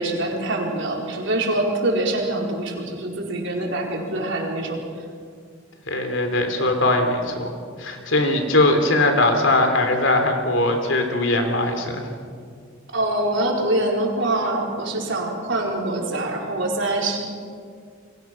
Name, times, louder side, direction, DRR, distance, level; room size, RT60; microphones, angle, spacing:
voice 1, 0.0-4.8 12.9-17.2, right 1 dB, 60° right, 0 dB, 4.6 m, -24 dB
voice 2, 5.9-7.5 7.8-12.0, left 2 dB, 65° left, 5 dB, 3.5 m, -20 dB
30.0 x 23.0 x 6.1 m, 2.1 s
head